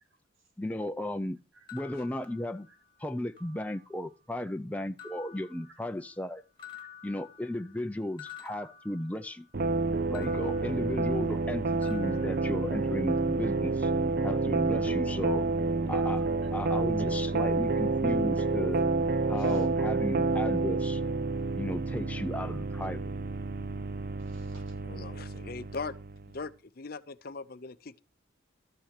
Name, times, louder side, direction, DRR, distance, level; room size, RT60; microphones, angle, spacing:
voice 1, 0.6-1.4 1.7-2.7 3.0-6.4 7.0-9.5 10.1-13.9 14.2-15.4 15.9-16.3 16.5-18.8 19.3-21.0 21.6-23.1, left 1 dB, 5° left, 0.5 m, -35 dB
sound 1, 1.7-3.0 3.4-4.1 5.0-6.3 6.6-9.5 10.1-11.5 11.8-13.2, left 8 dB, 25° left, 1.9 m, -51 dB
sound 2, 9.5-26.3, right 3 dB, 50° right, 0.6 m, -29 dB
voice 2, 19.1-19.7 24.2-24.8, right 2 dB, 75° right, 4.5 m, -57 dB
voice 3, 24.8-25.9 26.3-28.0, left 4 dB, 45° left, 0.7 m, -40 dB
13.0 x 6.2 x 6.6 m
head